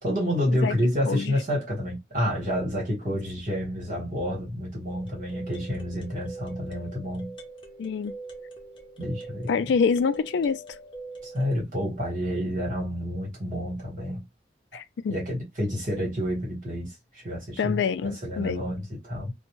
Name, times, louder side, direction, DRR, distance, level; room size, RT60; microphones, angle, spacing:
voice 1, 0.0-7.3 9.0-9.7 11.2-14.2 15.1-19.3, equal, 45° right, 1.4 m, -29 dB
voice 2, 1.1-1.4 7.8-8.1 9.5-10.6 14.7-15.1 17.6-18.6, left 5 dB, 85° left, 0.3 m, -26 dB
sound 1, 4.9-11.6, right 2 dB, 30° left, 0.5 m, -43 dB
2.6 x 2.1 x 3.0 m
head